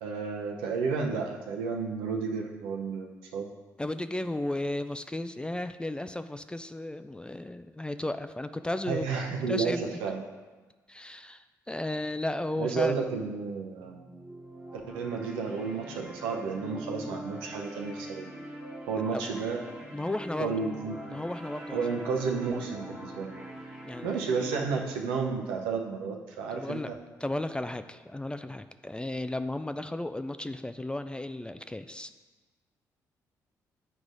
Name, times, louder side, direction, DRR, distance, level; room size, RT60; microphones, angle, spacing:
voice 1, 0.0-3.5 8.9-10.2 12.6-14.0 14.7-18.2 18.9-19.7 20.4-20.9 21.7-23.4 24.0-27.0, right 5 dB, 75° right, 1 dB, 0.7 m, -32 dB
voice 2, 3.8-9.0 9.5-9.9 10.9-12.9 19.1-19.2 19.9-20.5 21.1-21.8 23.8-24.1 26.5-26.9 27.2-32.1, left 1 dB, 10° left, 10 dB, 0.3 m, -34 dB
sound 1, 13.8-24.8, right 1 dB, 10° right, 1.2 m, -43 dB
9.6 x 4.7 x 2.6 m, 1.3 s
hypercardioid pair, 40°, 9 cm